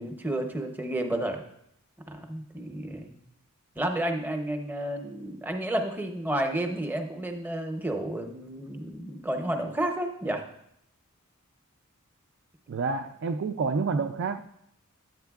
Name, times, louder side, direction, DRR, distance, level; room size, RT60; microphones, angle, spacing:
voice 1, 0.0-1.4 2.1-3.1 3.8-10.4, right 1 dB, 10° right, 0.6 m, -31 dB
voice 2, 12.7-14.4, right 4 dB, 55° right, 0.3 m, -28 dB
10.5 x 7.8 x 2.3 m
head